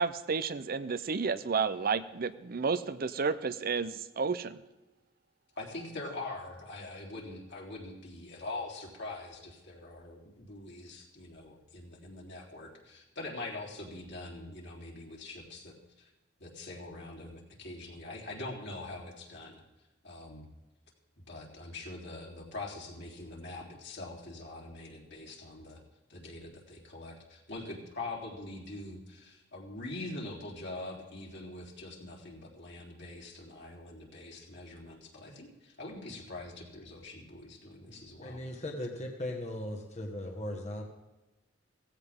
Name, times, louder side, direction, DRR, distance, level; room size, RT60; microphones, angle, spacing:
voice 1, 0.0-4.6, right 5 dB, 50° right, 13 dB, 0.6 m, -31 dB
voice 2, 5.6-16.1 16.4-19.6 20.0-20.5 21.3-25.8 26.1-38.4, left 2 dB, 60° left, -2 dB, 3.6 m, -43 dB
voice 3, 38.2-40.8, left 1 dB, 35° left, 1 dB, 1.5 m, -38 dB
17.0 x 16.0 x 3.7 m, 1.1 s
head